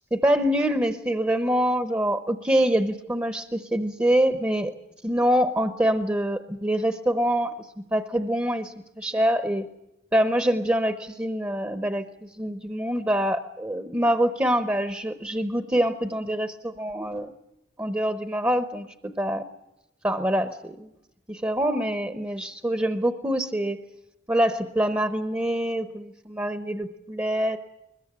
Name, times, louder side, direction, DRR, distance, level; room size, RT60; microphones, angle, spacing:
voice 1, 0.1-4.7 5.0-9.7 10.1-17.3 17.8-19.5 20.0-20.9 21.3-23.8 24.3-27.6, equal, 15° right, 10 dB, 0.8 m, -25 dB
22.0 x 21.5 x 8.7 m, 0.88 s
head